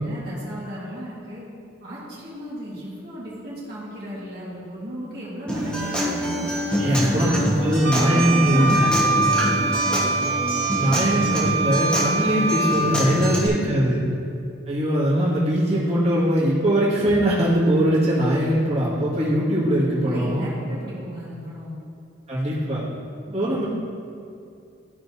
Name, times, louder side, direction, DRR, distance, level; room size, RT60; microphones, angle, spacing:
voice 1, 0.0-1.4 1.8-6.4 6.8-9.1 13.2-14.1 20.0-21.8 23.3-23.6, equal, 55° right, -8 dB, 1.9 m, -35 dB
Acoustic guitar, 5.5-13.5, equal, 5° left, 1.3 m, -26 dB
voice 2, 6.8-7.3 7.6-9.0 10.7-14.0 14.7-20.5 22.3-22.8 23.3-23.6, equal, 30° right, -10 dB, 1.9 m, -21 dB
Wind instrument woodwind instrument, 7.8-13.0, right 3 dB, 70° right, 1.2 m, -24 dB
13.0 x 5.8 x 2.7 m, 2.5 s
head